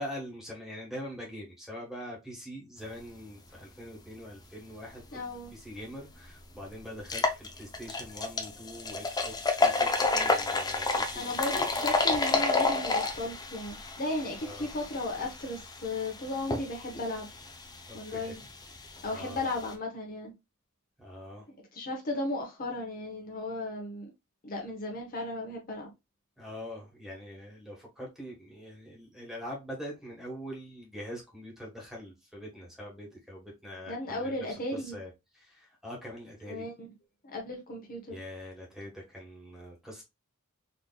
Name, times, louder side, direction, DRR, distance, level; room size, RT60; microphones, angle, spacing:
voice 1, 0.0-5.2 5.5-11.6 14.4-14.7 17.9-18.4 19.1-19.4 21.0-21.5 26.4-34.5 34.7-36.7 38.1-40.0, equal, ahead, 1.3 m, -43 dB
voice 2, 5.1-5.5 11.1-17.3 17.9-18.4 19.0-20.3 21.7-24.1 24.4-25.9 33.9-35.0 36.5-36.9 37.2-38.2, left 2 dB, 40° left, 0.9 m, -35 dB
sound 1, 5.7-5.8 6.3-6.4 7.0-19.7, left 3 dB, 20° left, 0.5 m, -31 dB
4.0 x 3.0 x 2.3 m
head